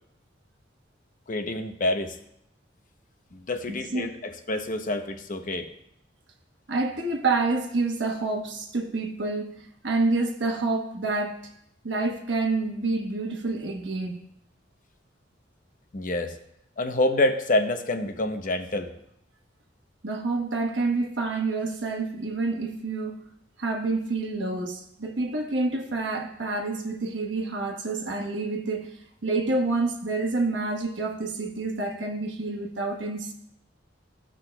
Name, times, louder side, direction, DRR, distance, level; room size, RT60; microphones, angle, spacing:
voice 1, 1.3-2.2 3.3-5.7 15.9-16.3 16.8-18.9, left 1 dB, 45° left, 0.7 m, -27 dB
voice 2, 3.7-4.1 6.7-11.5 11.8-14.2 20.0-23.2 23.6-28.9 29.2-33.3, right 3 dB, 80° right, 1.2 m, -28 dB
15.0 x 6.1 x 2.2 m
head